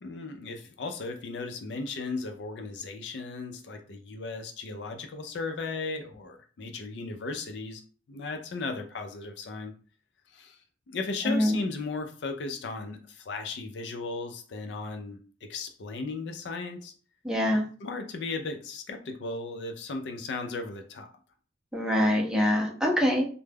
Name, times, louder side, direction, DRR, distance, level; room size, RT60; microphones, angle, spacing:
voice 1, 0.0-7.8 8.1-9.7 10.3-10.6 10.9-16.9 17.8-21.1, left 3 dB, 70° left, 5 dB, 0.4 m, -36 dB
voice 2, 11.3-11.7 17.2-17.7 21.7-23.3, left 1 dB, 5° right, -1 dB, 0.5 m, -24 dB
2.2 x 2.0 x 3.3 m, 0.41 s
head